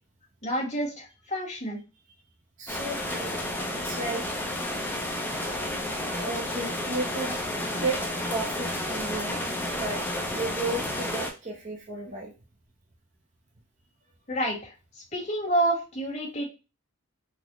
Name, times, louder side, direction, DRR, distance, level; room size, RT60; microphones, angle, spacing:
voice 1, 0.4-1.8 14.3-14.7 15.1-16.5, right 1 dB, 35° left, -2 dB, 1.4 m, -28 dB
voice 2, 2.6-3.4 3.7-4.2 6.1-7.3 7.7-8.0 8.3-10.0 10.3-12.3, right 2 dB, 35° right, -2 dB, 0.6 m, -33 dB
sound 1, 2.7-11.3, left 1 dB, 10° left, 0.5 m, -31 dB
3.9 x 2.1 x 3.0 m, 0.30 s
head